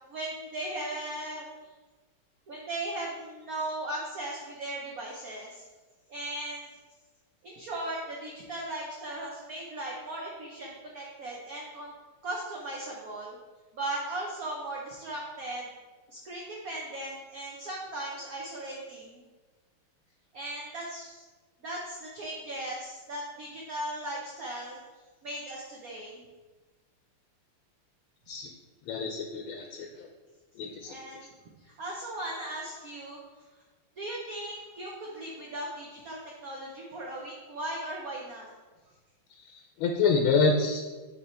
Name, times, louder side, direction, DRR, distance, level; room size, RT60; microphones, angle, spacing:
voice 1, 0.1-1.5 2.5-5.6 6.1-6.7 7.4-11.9 12.2-13.4 13.7-15.7 16.1-19.2 20.3-21.2 21.6-24.8 25.2-26.3 30.9-31.3 31.6-33.2 34.0-38.5, right 1 dB, 60° right, -3 dB, 1.0 m, -37 dB
voice 2, 28.9-30.1 30.6-30.9 39.4-40.9, left 4 dB, 80° left, 3 dB, 1.4 m, -27 dB
6.7 x 3.5 x 4.3 m, 1.3 s
omnidirectional pair, 2.4 m